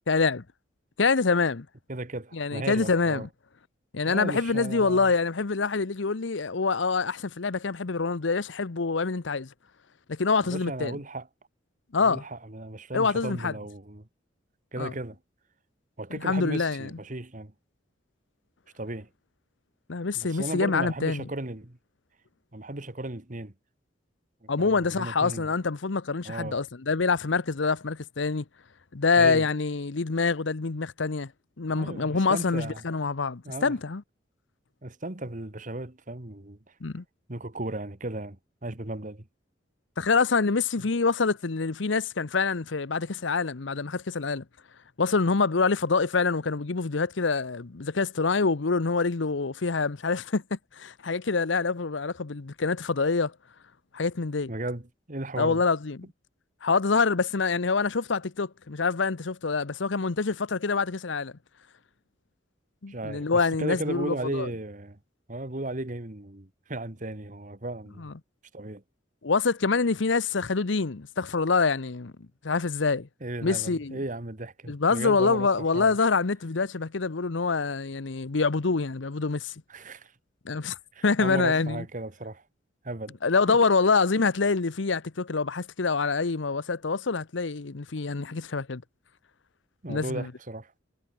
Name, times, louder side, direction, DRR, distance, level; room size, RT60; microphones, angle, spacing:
voice 1, 0.1-0.4 1.0-1.7 2.3-3.3 3.9-9.5 10.1-11.0 11.9-12.2 12.9-13.5 14.8-14.9 16.1-16.9 19.9-21.2 24.5-28.4 28.9-31.3 31.6-34.0 36.8-37.0 40.0-44.4 45.0-53.3 53.9-54.5 55.4-56.0 56.6-61.3 62.8-64.5 68.0-68.1 69.2-72.1 72.4-73.1 73.4-74.0 74.7-79.5 80.4-80.8 81.0-81.8 83.2-88.8 89.9-90.3, left 4 dB, 80° left, 0.9 m, -26 dB
voice 2, 1.9-3.3 4.1-5.1 10.4-11.3 12.0-14.1 14.7-15.2 16.0-17.5 18.7-19.1 20.1-21.8 22.5-23.5 24.4-25.5 26.2-26.6 29.2-29.5 31.7-32.9 33.4-33.7 34.8-36.6 37.3-39.3 40.8-40.9 54.5-55.6 62.9-65.0 65.3-68.1 68.5-68.8 73.2-76.0 79.7-80.1 80.9-82.4 82.8-83.2 83.5-83.6 89.8-90.7, right 2 dB, 45° right, 1.9 m, -35 dB
head